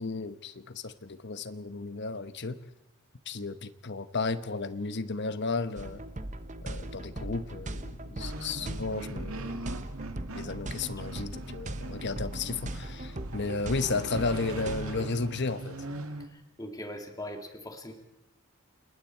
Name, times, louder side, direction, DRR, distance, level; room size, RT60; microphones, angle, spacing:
voice 1, 0.0-2.6 3.3-6.0 6.6-9.7 10.3-15.8, left 3 dB, 50° left, 1.1 m, -33 dB
sound 1, 5.8-15.1, right 1 dB, 35° right, 1.2 m, -39 dB
sound 2, 8.2-16.3, right 2 dB, 70° right, 2.1 m, -41 dB
voice 2, 16.2-17.9, left 1 dB, 15° left, 2.3 m, -41 dB
28.5 x 20.5 x 4.5 m
head